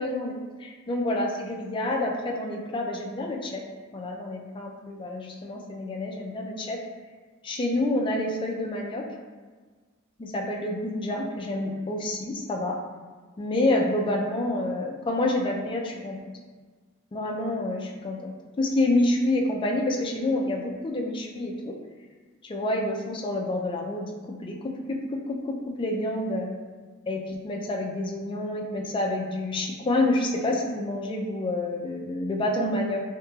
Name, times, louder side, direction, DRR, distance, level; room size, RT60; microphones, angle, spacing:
voice 1, 0.0-3.6 3.9-6.8 7.4-9.0 10.2-12.8 13.4-16.3 17.1-21.7 22.4-26.5 27.1-33.0, left 1 dB, 25° left, 0 dB, 0.3 m, -28 dB
2.9 x 2.8 x 2.3 m, 1.4 s
head